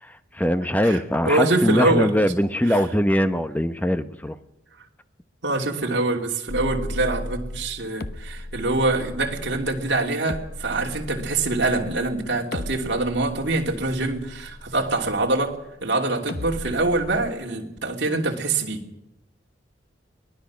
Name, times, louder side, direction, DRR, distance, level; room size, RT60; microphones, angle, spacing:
voice 1, 0.0-4.4, equal, 10° left, 0.8 m, -22 dB
voice 2, 1.2-2.2 2.7-2.8 5.4-18.9, right 2 dB, 65° right, 2.9 m, -24 dB
sound 1, 6.5-15.7 16.3-17.3, left 1 dB, 50° left, 0.9 m, -36 dB
23.5 x 18.5 x 6.2 m
head